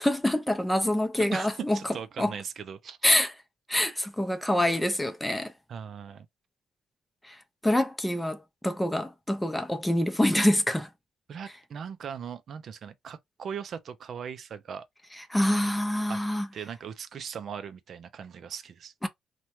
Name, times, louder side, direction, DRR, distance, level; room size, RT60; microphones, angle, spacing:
voice 1, 0.0-1.8 2.2-2.3 3.0-3.3 3.7-5.5 7.3-7.4 7.6-10.9 15.3-16.5 19.0-19.1, left 1 dB, 10° left, 0.5 m, -26 dB
voice 2, 1.1-3.0 5.7-6.3 11.3-14.9 16.1-16.2 16.5-18.9, right 7 dB, 60° right, 0.4 m, -39 dB
2.7 x 2.2 x 3.0 m
cardioid pair, 90°, 0 cm